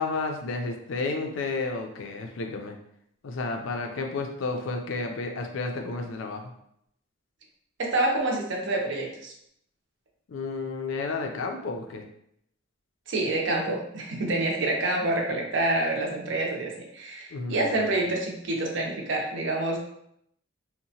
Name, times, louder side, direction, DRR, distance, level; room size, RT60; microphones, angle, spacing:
voice 1, 0.0-2.8 3.2-6.5 10.3-12.1 17.3-17.9, left 3 dB, 70° left, 3 dB, 0.4 m, -31 dB
voice 2, 7.8-9.3 13.1-19.8, right 2 dB, 60° right, 0 dB, 0.5 m, -27 dB
2.8 x 2.1 x 2.7 m, 0.74 s
head